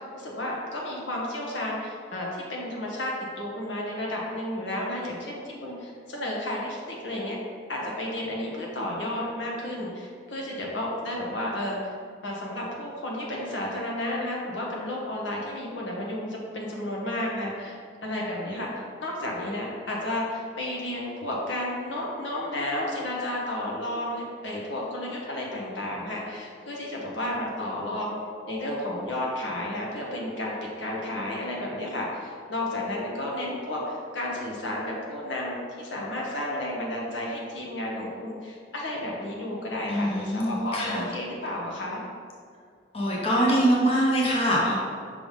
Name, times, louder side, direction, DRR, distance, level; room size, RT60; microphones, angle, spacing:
voice 1, 0.0-7.4 7.7-11.9 12.2-17.8 18.0-28.2 28.5-42.0, left 1 dB, 85° left, -3 dB, 1.3 m, -32 dB
voice 2, 39.9-41.0 42.9-44.8, equal, 30° left, -4 dB, 0.9 m, -23 dB
6.0 x 3.4 x 5.1 m, 2.2 s
head